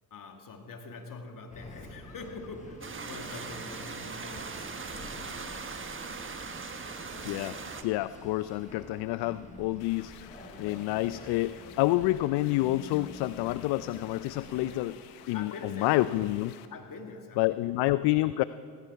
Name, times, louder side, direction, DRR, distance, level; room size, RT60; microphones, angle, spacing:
voice 1, 0.1-5.7 15.3-16.2 16.7-17.8, left 3 dB, 45° left, 4 dB, 2.3 m, -45 dB
sound 1, 1.5-14.8, left 1 dB, 15° left, 5.0 m, -48 dB
sound 2, 2.8-7.8, right 5 dB, 30° right, 1.4 m, -40 dB
voice 2, 7.2-7.6 7.8-10.3 10.6-15.0 15.3-15.5 15.8-16.5 17.4-18.4, left 17 dB, 65° left, 16 dB, 0.5 m, -28 dB
sound 3, 9.8-16.7, left 12 dB, 85° left, 1.0 m, -53 dB
17.5 x 16.0 x 4.7 m, 2.4 s
hypercardioid pair, 60°, 44 cm